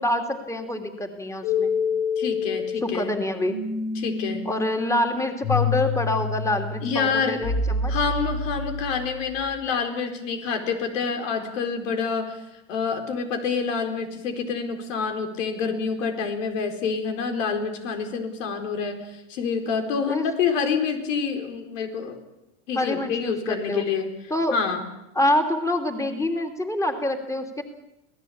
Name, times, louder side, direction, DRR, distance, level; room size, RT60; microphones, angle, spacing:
voice 1, 0.0-1.7 2.8-3.6 4.4-7.9 20.1-20.3 22.7-23.8 24.3-24.6 25.1-27.6, left 1 dB, 10° left, 4 dB, 2.8 m, -26 dB
sound 1, 1.4-9.3, left 4 dB, 55° left, 5.3 m, -28 dB
voice 2, 2.2-3.1 4.0-4.5 6.8-7.4 7.9-12.4 12.7-22.2 22.7-24.1 24.5-24.8, left 5 dB, 85° left, 5 dB, 4.5 m, -27 dB
26.0 x 17.5 x 8.6 m, 0.91 s
supercardioid pair, 120°, 37 cm